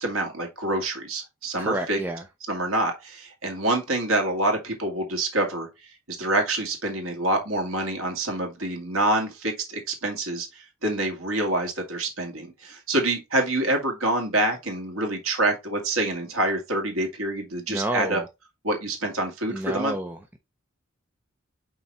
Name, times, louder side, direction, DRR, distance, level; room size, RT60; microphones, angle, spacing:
voice 1, 0.0-2.0 2.5-18.2 18.6-20.0, right 2 dB, 80° right, 2.0 m, -26 dB
voice 2, 1.6-2.2 17.7-18.2 19.5-20.4, right 1 dB, 10° right, 0.6 m, -30 dB
5.6 x 4.0 x 4.3 m
head